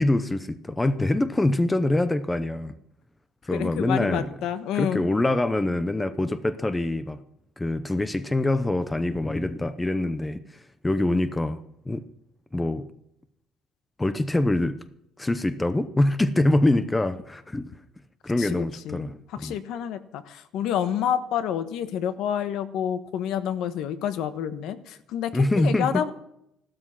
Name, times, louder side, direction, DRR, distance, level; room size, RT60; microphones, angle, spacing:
voice 1, 0.0-2.7 3.4-4.3 4.7-7.2 7.6-11.6 11.9-12.1 12.5-12.9 14.0-14.8 15.2-17.8 18.2-19.6 25.3-26.1, left 2 dB, 10° left, 12 dB, 0.6 m, -24 dB
voice 2, 3.5-5.0 18.4-19.1 19.4-26.1, left 9 dB, 70° left, 12 dB, 1.2 m, -29 dB
15.0 x 12.5 x 5.8 m, 0.78 s
cardioid pair, 160°, 0 cm